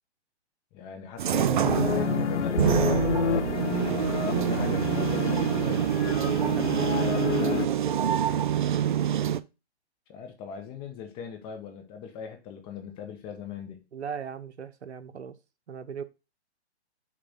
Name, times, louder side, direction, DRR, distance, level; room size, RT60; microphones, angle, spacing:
voice 1, 0.7-3.8 4.0-5.9 10.1-13.8, left 7 dB, 15° left, 0.7 m, -40 dB
sound 1, 1.2-9.4, right 10 dB, 45° right, 0.4 m, -26 dB
sound 2, 1.6-7.7, left 6 dB, 85° left, 0.6 m, -29 dB
voice 2, 6.1-8.2 13.9-15.4 15.7-16.0, right 7 dB, 75° right, 0.9 m, -38 dB
7.0 x 2.5 x 5.6 m
hypercardioid pair, 140°, 34 cm